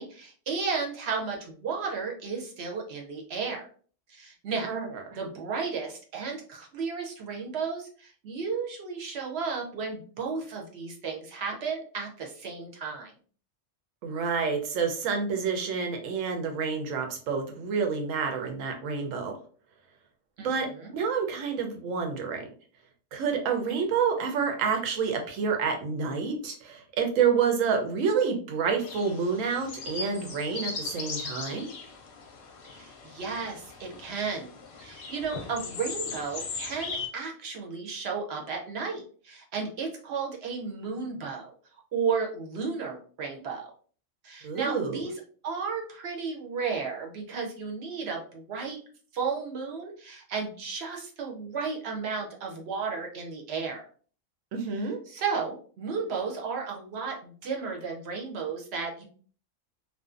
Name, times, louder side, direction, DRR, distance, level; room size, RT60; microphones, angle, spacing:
voice 1, 0.0-3.6 4.1-4.7 5.2-13.1 20.4-20.9 32.7-34.5 34.8-41.5 41.9-43.7 44.2-45.1 45.4-48.8 49.1-53.8 54.7-54.8 55.1-59.1, right 5 dB, 60° right, 1 dB, 0.8 m, -33 dB
voice 2, 14.0-19.4 20.4-22.4 23.1-31.7 44.4-45.0 54.5-55.0, right 6 dB, 90° right, 4 dB, 1.0 m, -28 dB
sound 1, 28.8-37.1, left 4 dB, 55° left, 0.6 m, -39 dB
2.5 x 2.2 x 2.4 m, 0.43 s
omnidirectional pair, 1.3 m